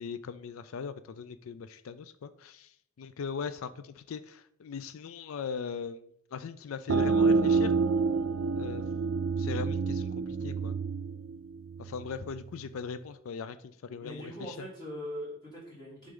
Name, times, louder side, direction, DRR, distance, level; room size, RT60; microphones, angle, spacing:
voice 1, 0.0-7.7 8.5-8.8 9.4-10.7 11.8-14.7, left 6 dB, 85° left, 13 dB, 0.4 m, -39 dB
sound 1, 6.9-12.3, right 4 dB, 70° right, 0.4 m, -28 dB
voice 2, 14.0-16.1, equal, 20° left, -7 dB, 2.7 m, -41 dB
6.8 x 3.7 x 5.3 m, 0.68 s
head